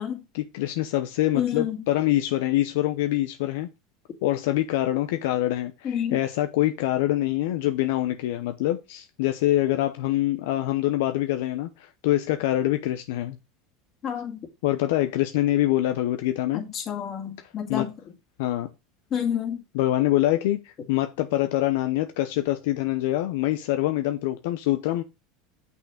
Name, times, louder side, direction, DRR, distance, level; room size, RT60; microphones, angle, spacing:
voice 1, 0.3-3.7 4.2-13.4 14.6-16.6 17.7-17.9 18.4-18.7 19.7-25.0, left 14 dB, 75° left, 0.7 m, -25 dB
voice 2, 1.3-1.8 5.8-6.2 14.0-14.4 16.5-17.9 19.1-19.6, left 8 dB, 40° left, 2.0 m, -29 dB
6.6 x 5.6 x 5.0 m
supercardioid pair, 120°, 0 cm